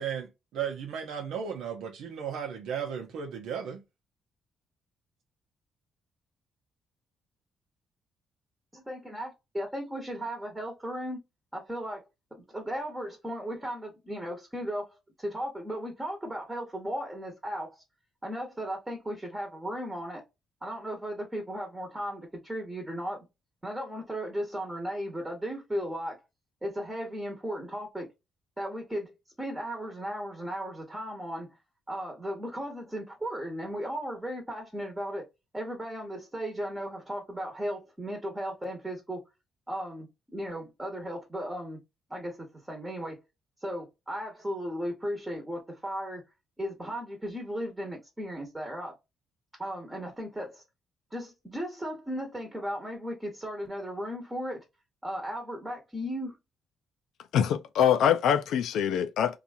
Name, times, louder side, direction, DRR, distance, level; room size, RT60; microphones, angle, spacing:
voice 1, 0.0-3.8, right 7 dB, 85° right, 0.7 m, -35 dB
voice 2, 8.7-11.2 11.5-12.0 12.3-14.8 15.2-17.8 18.2-20.2 20.6-23.3 23.6-26.2 26.6-28.1 28.6-31.6 31.9-35.2 35.5-39.2 39.7-41.8 42.1-43.2 43.6-46.2 46.6-48.9 49.6-50.6 51.1-54.6 55.0-56.4, equal, 15° right, 1.1 m, -36 dB
voice 3, 57.3-59.4, left 9 dB, 80° left, 0.4 m, -24 dB
2.8 x 2.4 x 2.5 m
cardioid pair, 90°, 0 cm